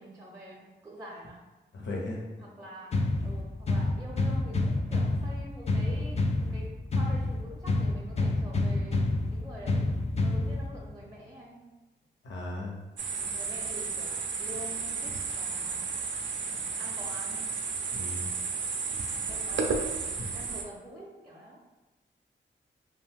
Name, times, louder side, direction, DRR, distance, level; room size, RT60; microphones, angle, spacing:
voice 1, 0.0-1.4 2.4-9.9 10.2-11.7 13.3-15.9 16.8-17.5 19.3-19.8 20.3-21.6, equal, 15° right, -3 dB, 0.5 m, -46 dB
voice 2, 1.7-2.2 12.2-12.8 17.9-18.3 20.2-20.3, left 2 dB, 70° left, -2 dB, 0.7 m, -36 dB
sound 1, 2.9-10.9, left 2 dB, 35° left, 0.4 m, -28 dB
sound 2, 13.0-20.6, right 5 dB, 70° right, 0.4 m, -33 dB
2.5 x 2.2 x 3.3 m, 1.1 s
cardioid pair, 45°, 20 cm